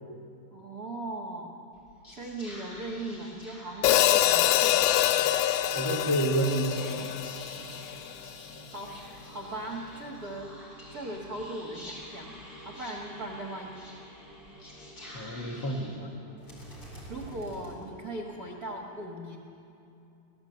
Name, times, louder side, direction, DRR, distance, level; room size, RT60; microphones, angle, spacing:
voice 1, 0.5-1.6 2.1-5.1 8.7-10.5 10.9-12.4 12.6-13.8 17.1-19.4, right 1 dB, 85° right, 0 dB, 0.8 m, -38 dB
Whispering, 1.7-18.3, equal, 25° left, 5.0 m, -47 dB
Hi-hat, 3.8-8.1, left 13 dB, 80° left, 2.5 m, -25 dB
voice 2, 5.7-7.1 15.1-16.1, right 1 dB, 40° left, -2 dB, 1.9 m, -29 dB
21.0 x 17.0 x 8.0 m, 2.7 s
omnidirectional pair, 4.5 m